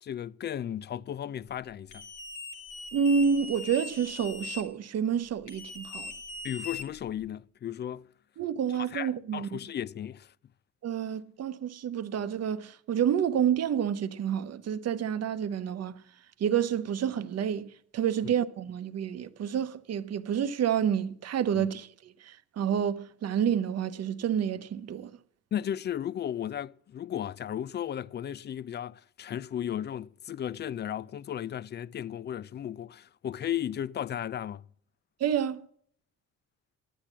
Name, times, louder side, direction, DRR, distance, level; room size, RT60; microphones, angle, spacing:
voice 1, 0.0-2.1 6.4-8.1 8.7-10.3 18.2-18.3 21.5-21.7 25.5-34.6, left 10 dB, 35° left, 0.4 m, -35 dB
sound 1, 1.9-4.6 5.5-7.3, left 3 dB, 85° left, 2.0 m, -41 dB
voice 2, 2.9-6.1 8.4-9.5 10.8-16.0 16.4-25.1 35.2-35.7, right 8 dB, 55° right, 0.8 m, -29 dB
10.0 x 9.1 x 7.2 m
cardioid pair, 90°, 30 cm